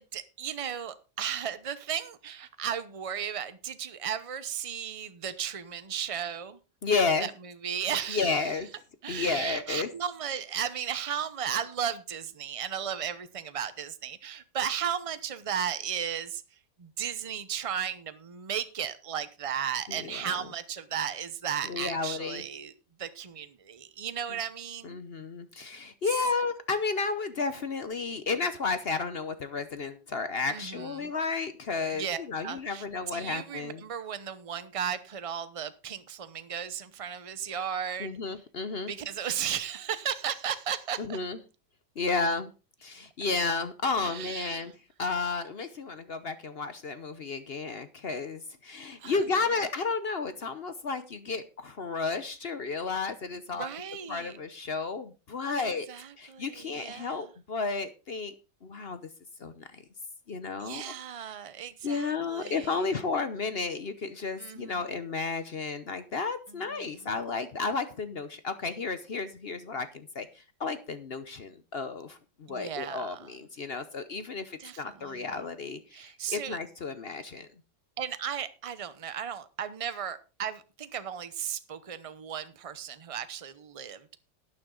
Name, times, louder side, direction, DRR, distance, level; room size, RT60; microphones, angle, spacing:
voice 1, 0.0-6.6 7.2-8.6 9.0-22.7 23.0-25.0 30.5-31.1 31.9-38.2 38.9-41.2 44.0-44.7 49.0-49.5 53.5-54.4 55.6-57.3 60.6-63.0 64.4-65.0 66.5-67.1 72.5-73.4 74.6-75.4 75.9-76.6 78.0-84.2, right 8 dB, 50° right, 0.4 m, -35 dB
voice 2, 6.8-7.3 8.1-8.7 9.1-9.9 19.9-20.2 21.6-22.4 24.8-33.8 38.0-38.9 41.0-41.4 42.0-42.5 42.8-44.7 45.0-53.7 54.1-55.9 56.2-58.3 58.6-59.0 59.4-59.8 60.3-60.9 61.8-77.5, left 4 dB, 50° left, 0.8 m, -32 dB
11.5 x 9.6 x 3.9 m
omnidirectional pair, 1.9 m